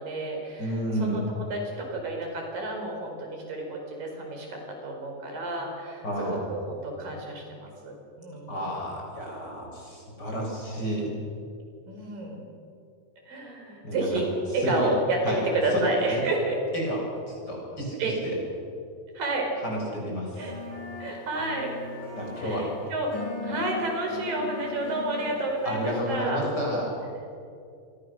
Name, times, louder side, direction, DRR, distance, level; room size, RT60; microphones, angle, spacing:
voice 1, 0.0-0.6 1.0-8.5 11.9-12.4 13.3-16.6 18.0-18.2 19.2-19.5 20.4-20.6 21.0-21.7 22.4-23.1 23.4-26.4, right 2 dB, 80° right, 2 dB, 6.3 m, -30 dB
voice 2, 0.6-1.2 6.0-6.4 8.5-11.1 13.8-14.1 14.5-14.9 15.2-15.4 15.7-16.2 16.7-18.3 19.6-20.4 22.2-22.7 25.6-26.9, equal, 30° left, -2 dB, 7.7 m, -31 dB
sound 1, 20.4-26.0, left 3 dB, 65° left, 6.9 m, -39 dB
28.0 x 23.5 x 6.7 m, 2.4 s
omnidirectional pair, 3.9 m